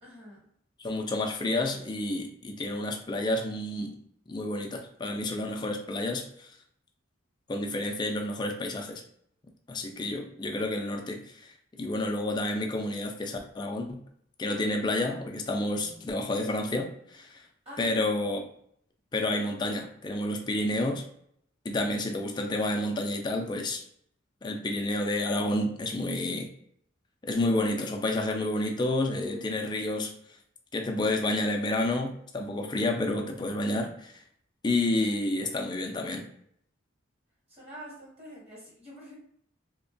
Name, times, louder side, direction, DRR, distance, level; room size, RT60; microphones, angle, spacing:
voice 1, 0.0-0.4 17.6-18.0 37.5-39.1, equal, 30° right, -5 dB, 1.1 m, -46 dB
voice 2, 0.8-4.0 4.3-6.5 7.5-9.0 9.7-14.0 14.4-17.4 17.8-18.5 19.1-21.0 21.6-23.8 24.4-26.5 27.2-30.1 30.7-34.1 34.6-36.3, left 1 dB, 20° left, 3 dB, 0.3 m, -30 dB
2.8 x 2.2 x 2.5 m, 0.68 s
head